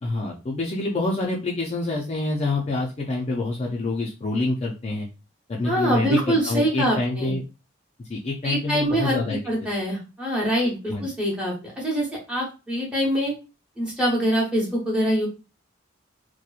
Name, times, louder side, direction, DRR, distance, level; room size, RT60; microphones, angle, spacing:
voice 1, 0.0-5.1 5.5-7.4 8.0-9.4 10.9-11.1, left 2 dB, 30° left, -1 dB, 0.4 m, -26 dB
voice 2, 5.6-7.3 8.4-9.2 9.5-13.3 13.8-15.3, equal, 5° right, -5 dB, 0.9 m, -24 dB
2.8 x 2.1 x 2.3 m, 0.30 s
head